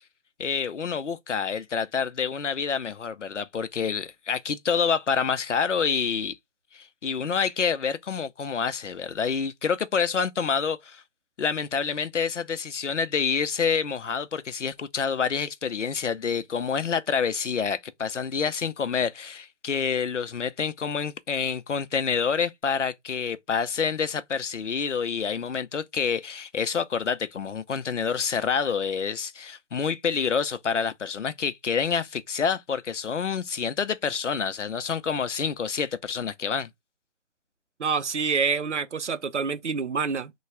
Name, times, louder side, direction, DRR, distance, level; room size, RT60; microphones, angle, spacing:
voice 1, 0.4-6.4 6.7-11.0 11.4-36.7, left 6 dB, 90° left, 0.6 m, -27 dB
voice 2, 37.8-40.3, right 5 dB, 75° right, 0.6 m, -27 dB
3.3 x 2.3 x 3.1 m
figure-of-eight pair, 175°, 35 cm